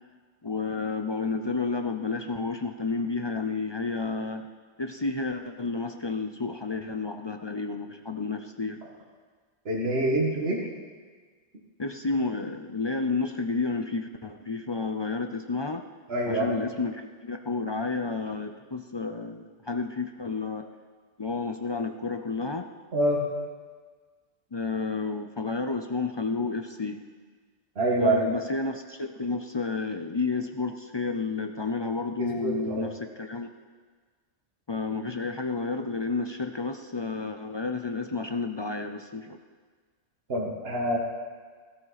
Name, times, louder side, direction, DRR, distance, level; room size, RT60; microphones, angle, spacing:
voice 1, 0.4-4.5 4.8-8.8 11.8-15.8 16.3-20.7 21.2-22.7 24.5-27.0 28.0-33.5 34.7-39.4, left 4 dB, 40° left, 6 dB, 0.3 m, -31 dB
voice 2, 9.7-10.6 16.1-16.6 22.9-23.2 27.8-28.2 32.2-32.9 40.3-41.0, right 1 dB, 50° right, -3 dB, 2.0 m, -26 dB
17.0 x 14.0 x 4.1 m, 1.5 s
omnidirectional pair, 1.3 m